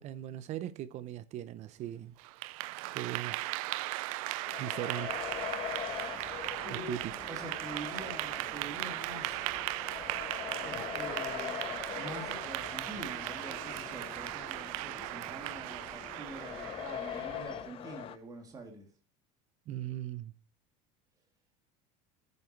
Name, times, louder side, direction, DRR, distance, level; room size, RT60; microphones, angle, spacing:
voice 1, 0.0-2.1 2.9-3.4 4.6-5.2 6.7-7.3 19.7-20.3, right 13 dB, 40° right, 0.7 m, -39 dB
Clapping / Applause, 2.2-17.5, right 20 dB, 80° right, 0.5 m, -38 dB
sound 1, 4.5-18.2, left 11 dB, 30° left, 0.7 m, -43 dB
sound 2, 4.9-17.7, left 2 dB, 5° left, 1.4 m, -51 dB
voice 2, 6.6-7.0 7.3-9.5 10.6-18.8, right 3 dB, 20° right, 3.0 m, -46 dB
9.7 x 9.7 x 4.6 m
cardioid pair, 150°, 18 cm